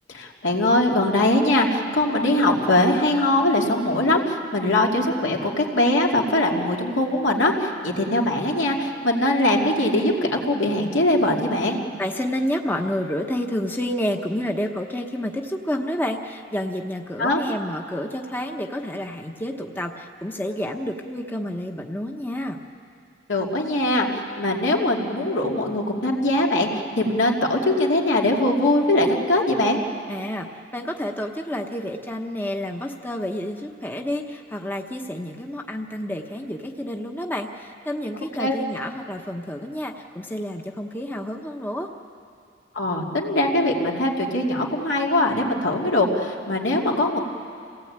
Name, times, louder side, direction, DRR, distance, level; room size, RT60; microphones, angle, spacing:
voice 1, 0.1-11.8 17.2-17.4 23.3-29.8 38.4-38.6 42.7-47.2, left 1 dB, 75° left, -1 dB, 2.8 m, -21 dB
voice 2, 11.7-22.6 30.1-41.9, left 1 dB, 10° left, 3 dB, 1.0 m, -29 dB
28.0 x 18.0 x 8.8 m, 2.4 s
head